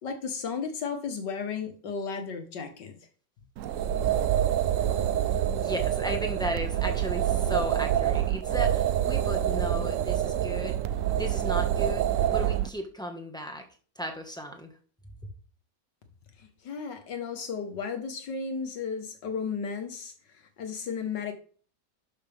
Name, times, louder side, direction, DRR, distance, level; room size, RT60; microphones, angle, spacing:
voice 1, 0.0-3.0 16.4-20.1 20.6-21.3, left 5 dB, 75° left, 7 dB, 2.1 m, -34 dB
sound 1, 3.6-12.7, right 11 dB, 75° right, 0.7 m, -26 dB
voice 2, 5.6-10.8 11.2-12.0 12.3-13.6 13.9-14.7, equal, ahead, 3 dB, 1.3 m, -35 dB
12.0 x 6.3 x 3.5 m, 0.42 s
omnidirectional pair, 1.9 m